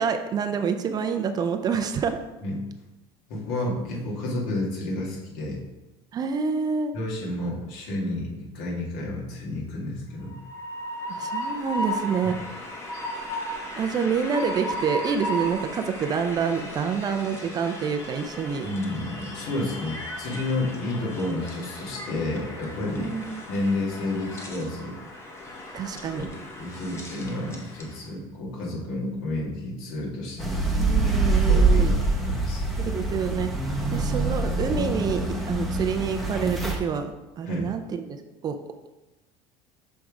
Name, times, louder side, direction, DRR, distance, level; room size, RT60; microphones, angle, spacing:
voice 1, 0.0-2.2 6.1-6.9 11.1-12.4 13.8-18.7 23.0-23.4 25.7-26.3 30.8-32.0 32.8-33.5 33.9-38.1 38.4-38.6, right 6 dB, 30° right, 7 dB, 0.4 m, -27 dB
voice 2, 3.3-5.6 6.9-10.4 12.2-12.3 18.6-23.1 23.5-25.0 26.1-26.2 26.6-30.6 31.5-32.7 33.8-34.0 37.5-37.7, left 1 dB, 75° left, -3 dB, 2.1 m, -31 dB
Train, 10.2-28.0, left 1 dB, 20° left, 1.0 m, -36 dB
sound 1, 30.4-36.8, right 2 dB, ahead, 0.8 m, -24 dB
6.3 x 3.5 x 4.8 m, 1.0 s
cardioid pair, 150°, 14 cm